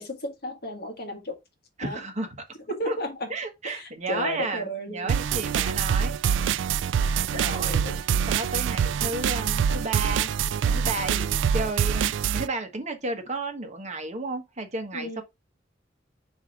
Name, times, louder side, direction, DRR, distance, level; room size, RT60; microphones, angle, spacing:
voice 1, 0.0-1.4 1.8-2.0 2.7-3.3 3.6-5.1 7.3-8.0 14.9-15.2, left 1 dB, 55° left, 1.7 m, -33 dB
voice 2, 1.8-2.3 2.8-3.0 3.3-6.1 7.3-7.8 8.3-10.3 10.6-15.2, right 2 dB, 40° right, 1.3 m, -32 dB
sound 1, 5.1-12.5, right 7 dB, 75° right, 0.3 m, -25 dB
4.7 x 4.4 x 5.0 m
head